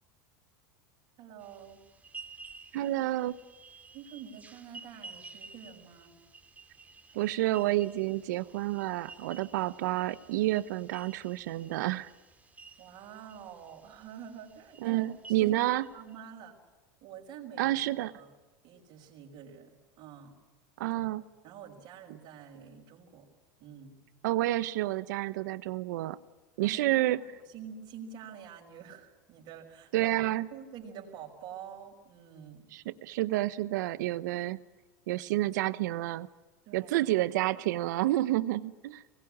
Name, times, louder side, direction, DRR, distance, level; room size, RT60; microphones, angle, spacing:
voice 1, 1.2-1.8 3.9-6.1 12.8-15.6 15.9-16.6 17.0-17.7 18.1-18.4 18.6-20.4 20.9-21.1 21.4-23.3 23.6-24.0 26.6-30.2 30.5-32.7 36.7-36.9, right 8 dB, 55° right, -2 dB, 5.6 m, -47 dB
sound 1, 1.4-16.2, right 4 dB, 15° right, 2.9 m, -52 dB
voice 2, 2.7-3.4 7.1-12.1 14.8-15.8 17.6-18.1 20.8-21.2 24.2-26.2 26.6-27.2 29.9-30.5 32.7-34.6 35.1-36.3 36.7-39.0, right 16 dB, 75° right, 16 dB, 1.1 m, -29 dB
24.0 x 20.5 x 8.7 m, 1.2 s
hypercardioid pair, 100°, 10 cm